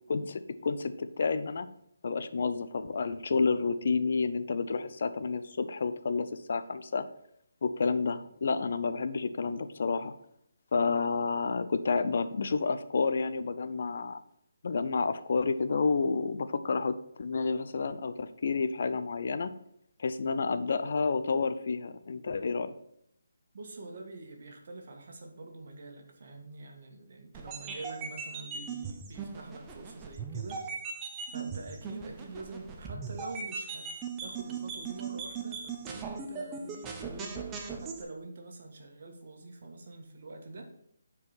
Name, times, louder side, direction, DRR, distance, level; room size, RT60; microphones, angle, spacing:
voice 1, 0.1-1.7 2.0-7.0 7.6-10.1 10.7-14.2 14.6-19.5 20.0-22.7, left 4 dB, 55° left, 11 dB, 0.5 m, -30 dB
voice 2, 23.5-30.6 31.3-33.9 34.2-40.7, right 3 dB, 55° right, 3 dB, 1.6 m, -45 dB
sound 1, 27.3-38.0, right 5 dB, 15° right, 0.7 m, -39 dB
9.4 x 4.7 x 4.1 m, 0.72 s
hypercardioid pair, 165°, 0 cm